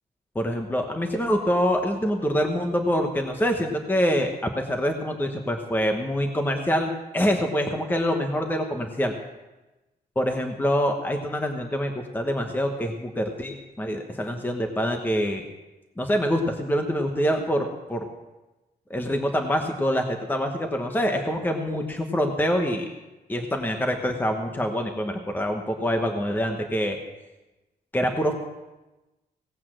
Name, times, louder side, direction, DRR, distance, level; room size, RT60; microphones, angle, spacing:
voice 1, 0.3-9.1 10.2-15.4 16.0-18.0 18.9-22.9 23.3-27.0 27.9-28.3, equal, 10° left, 4 dB, 1.1 m, -25 dB
18.0 x 8.4 x 6.3 m, 1.1 s
wide cardioid pair, 135°, 16 cm